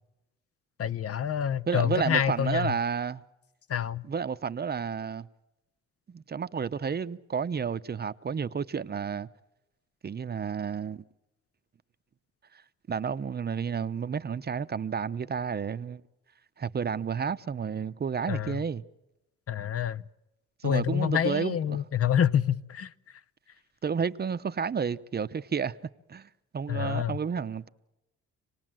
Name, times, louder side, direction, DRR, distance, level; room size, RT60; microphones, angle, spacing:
voice 1, 0.8-2.7 3.7-4.0 18.3-18.6 19.5-20.0 20.6-22.9 26.7-27.2, left 9 dB, 50° left, 0.7 m, -27 dB
voice 2, 1.7-3.2 4.0-5.3 6.1-9.3 10.0-11.0 12.9-16.0 16.6-18.8 20.6-21.8 23.8-25.8 26.1-27.7, right 6 dB, 35° right, 0.8 m, -31 dB
27.5 x 19.0 x 7.6 m
cardioid pair, 90°, 30 cm